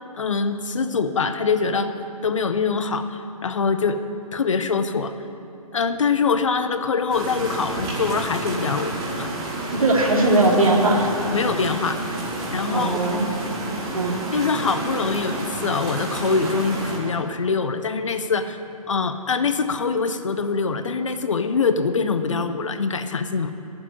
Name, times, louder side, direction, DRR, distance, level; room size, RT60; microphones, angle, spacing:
voice 1, 0.2-1.9 2.2-4.0 4.3-5.1 5.7-9.3 11.3-12.0 12.5-13.0 14.3-18.6 18.9-23.5, left 5 dB, 55° left, 10 dB, 0.8 m, -24 dB
sound 1, 7.1-17.0, right 2 dB, 20° right, 2.1 m, -30 dB
voice 2, 9.7-11.1 12.7-13.3 13.9-14.2, right 2 dB, 65° right, -1 dB, 2.6 m, -19 dB
10.5 x 7.8 x 9.6 m, 2.8 s
figure-of-eight pair, 130°, 19 cm